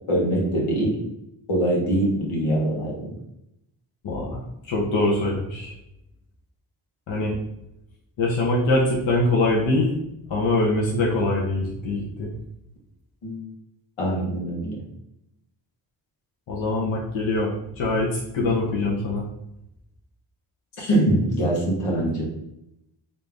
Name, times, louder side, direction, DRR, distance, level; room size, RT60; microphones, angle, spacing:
voice 1, 0.1-1.0 1.5-3.1 13.2-13.4 14.0-14.8 20.8-22.3, right 1 dB, 85° left, -3 dB, 1.3 m, -23 dB
voice 2, 4.0-4.4 4.7-5.7 7.1-7.3 8.2-9.9 10.3-12.3 16.5-19.3, left 2 dB, 70° left, -3 dB, 1.0 m, -23 dB
3.3 x 2.7 x 3.3 m, 0.82 s
cardioid pair, 50°, 49 cm